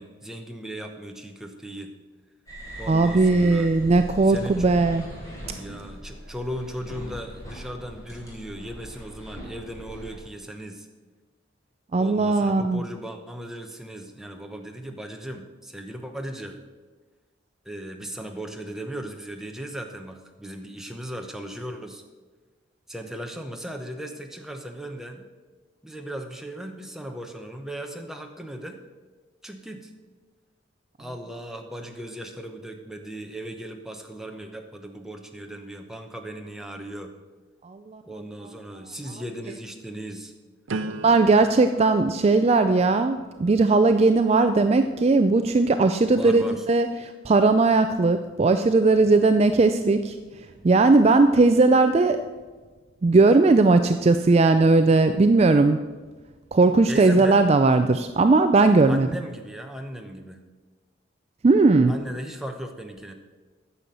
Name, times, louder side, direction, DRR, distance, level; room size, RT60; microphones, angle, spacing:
voice 1, 0.0-1.9 2.8-3.7 4.3-4.6 5.6-10.9 12.0-16.6 17.6-22.0 22.9-25.2 25.8-28.8 29.4-29.9 31.0-37.1 38.0-40.3 46.1-46.7 56.8-57.5 58.9-60.4 61.9-63.1, right 1 dB, ahead, 3 dB, 0.9 m, -37 dB
sound 1, 2.5-10.2, equal, 15° left, 3.3 m, -40 dB
voice 2, 2.9-5.1 11.9-12.8 37.6-38.0 40.9-50.2 50.6-52.2 53.0-55.8 56.5-59.1 61.4-61.9, right 3 dB, 30° right, 9 dB, 0.4 m, -18 dB
sound 2, 40.7-46.5 47.1-47.5, right 2 dB, 85° right, 0.6 m, -40 dB
9.8 x 7.0 x 7.6 m, 1.3 s
head